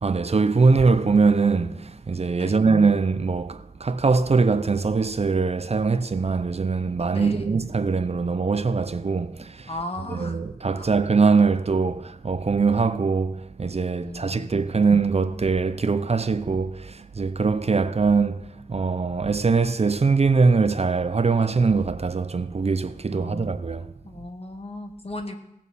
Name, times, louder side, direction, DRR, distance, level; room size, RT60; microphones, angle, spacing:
voice 1, 0.0-23.9, right 4 dB, 45° right, 0.5 m, -22 dB
voice 2, 7.1-7.5 9.7-10.4 10.7-10.9 14.0-14.5 23.1-23.6 24.0-25.3, left 2 dB, 45° left, 1.5 m, -36 dB
18.5 x 7.3 x 4.1 m
wide cardioid pair, 70°, 15 cm